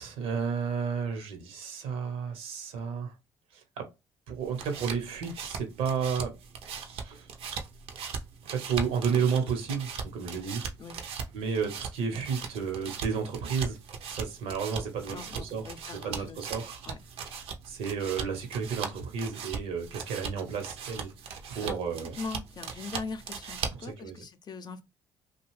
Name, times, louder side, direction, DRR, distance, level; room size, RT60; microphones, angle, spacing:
voice 1, 0.0-3.1 3.5-3.9 4.3-6.3 7.0-7.3 8.4-10.6 11.3-13.8 14.1-15.6 16.0-16.8 17.6-21.1 21.5-22.1 23.8-24.2, right 6 dB, 85° right, 0.9 m, -32 dB
sound 1, 4.3-23.9, right 6 dB, 70° right, 0.6 m, -39 dB
voice 2, 15.1-16.4 16.8-17.0 21.6-24.8, left 4 dB, 40° left, 0.5 m, -41 dB
2.5 x 2.2 x 3.1 m
supercardioid pair, 75°, 10 cm